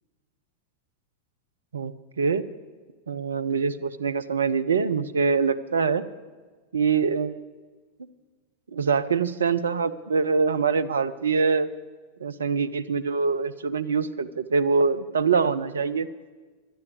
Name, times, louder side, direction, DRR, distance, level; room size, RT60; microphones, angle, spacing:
voice 1, 1.7-2.4 3.1-6.0 6.7-7.4 8.7-11.7 12.2-16.1, right 5 dB, 70° right, 13 dB, 0.5 m, -24 dB
11.5 x 10.5 x 6.5 m, 1.4 s
figure-of-eight pair, 90°, 0 cm